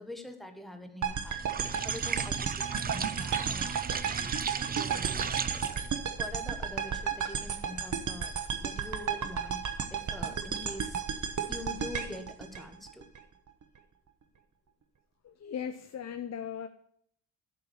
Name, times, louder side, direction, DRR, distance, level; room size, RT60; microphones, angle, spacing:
voice 1, 0.0-8.3 8.6-11.0 11.5-13.1, left 1 dB, ahead, 1.4 m, -45 dB
sound 1, 1.0-13.2, right 7 dB, 45° right, 1.1 m, -33 dB
sound 2, 1.3-6.0, right 6 dB, 25° right, 0.3 m, -35 dB
voice 2, 15.2-16.7, left 8 dB, 40° left, 0.6 m, -38 dB
12.0 x 4.8 x 7.0 m
cardioid pair, 105°, 41 cm